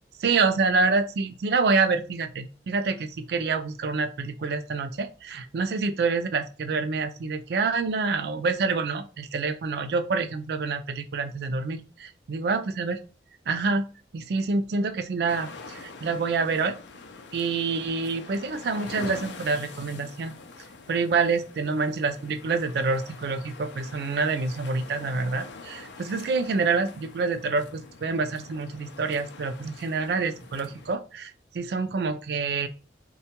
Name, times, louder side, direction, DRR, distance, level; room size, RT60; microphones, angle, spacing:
voice 1, 0.2-13.0 13.5-13.8 14.1-16.7 17.3-20.3 20.9-32.7, right 4 dB, 65° right, 10 dB, 0.4 m, -27 dB
sound 1, 15.3-31.0, left 4 dB, 85° left, 0.4 m, -45 dB
3.6 x 2.2 x 2.9 m, 0.35 s
head